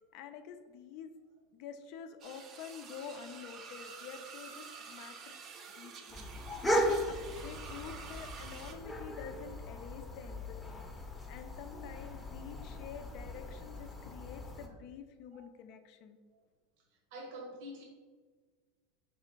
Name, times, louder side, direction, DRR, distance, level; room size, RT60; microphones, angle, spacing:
voice 1, 0.1-1.1 1.5-5.4 5.7-6.5 6.9-10.9 11.3-16.2, left 7 dB, 60° left, 8 dB, 0.5 m, -48 dB
sound 1, 2.2-8.7, right 5 dB, 40° right, 0.6 m, -49 dB
sound 2, 6.1-14.7, equal, 10° left, 0.7 m, -37 dB
voice 2, 17.1-17.8, equal, 65° right, 0 dB, 0.9 m, -45 dB
4.8 x 2.5 x 4.4 m, 1.5 s
supercardioid pair, 115°, 0 cm